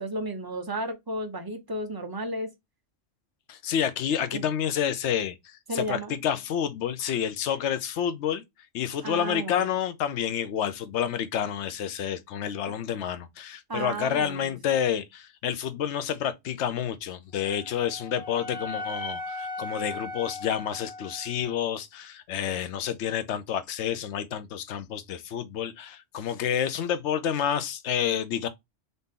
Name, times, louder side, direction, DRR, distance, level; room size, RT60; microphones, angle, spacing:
voice 1, 0.0-2.5 4.3-4.4 5.7-6.2 9.0-9.7 13.7-14.6, right 1 dB, 25° right, 0.5 m, -33 dB
voice 2, 3.5-5.4 5.7-8.4 8.7-28.5, left 9 dB, 70° left, 0.9 m, -29 dB
Wind instrument woodwind instrument, 17.4-21.6, left 2 dB, 5° left, 1.3 m, -38 dB
4.0 x 2.7 x 3.6 m
omnidirectional pair, 1.3 m